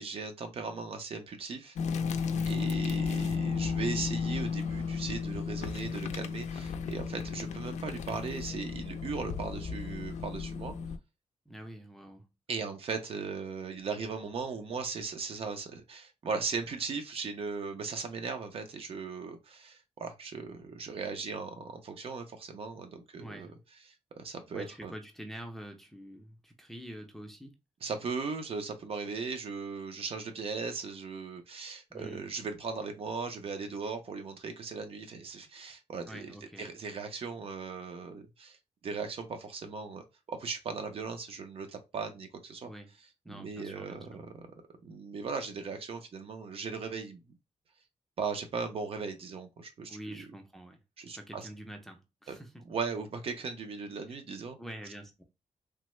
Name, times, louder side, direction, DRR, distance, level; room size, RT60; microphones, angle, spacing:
voice 1, 0.0-1.8 2.5-10.8 12.5-23.5 24.2-24.9 27.8-38.6 38.8-42.7 43.3-44.3 44.8-47.2 48.2-50.0 51.0-51.4 52.3-52.4 52.7-54.6, right 4 dB, 55° right, 0.6 m, -38 dB
sound 1, 1.8-11.0, left 5 dB, 75° left, 0.4 m, -34 dB
voice 2, 2.3-2.7 11.5-12.3 23.1-23.6 24.5-27.6 31.9-32.3 36.1-36.8 42.6-43.0 43.2-44.2 49.9-52.6 54.1-54.2 54.6-55.2, equal, ahead, 0.5 m, -46 dB
3.3 x 2.0 x 3.0 m
wide cardioid pair, 150°, 12 cm